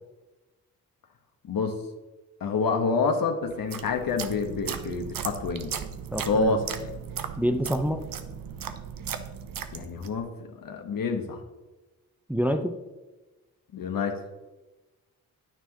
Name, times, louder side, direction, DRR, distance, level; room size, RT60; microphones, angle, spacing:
voice 1, 1.4-1.8 2.4-5.7 6.3-6.6 9.7-10.3 10.6-11.4 13.7-14.2, left 4 dB, 65° left, 5 dB, 1.5 m, -27 dB
sound 1, 3.5-10.2, right 8 dB, 65° right, 0.9 m, -37 dB
voice 2, 6.1-6.6 7.4-8.1 12.3-12.8, equal, 5° right, 5 dB, 1.0 m, -27 dB
10.5 x 9.4 x 3.1 m, 1.1 s
cardioid pair, 60°, 36 cm